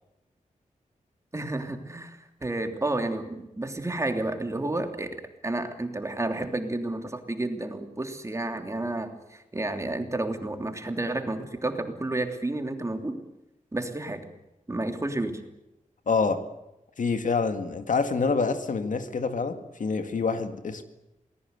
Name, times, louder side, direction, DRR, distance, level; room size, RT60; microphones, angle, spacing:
voice 1, 1.3-13.2 13.7-14.3 14.7-15.4, right 2 dB, 20° right, 5 dB, 3.0 m, -31 dB
voice 2, 16.1-16.5 17.0-20.8, left 4 dB, 70° left, 8 dB, 2.1 m, -27 dB
28.0 x 19.5 x 8.2 m, 0.92 s
wide cardioid pair, 115°, 14 cm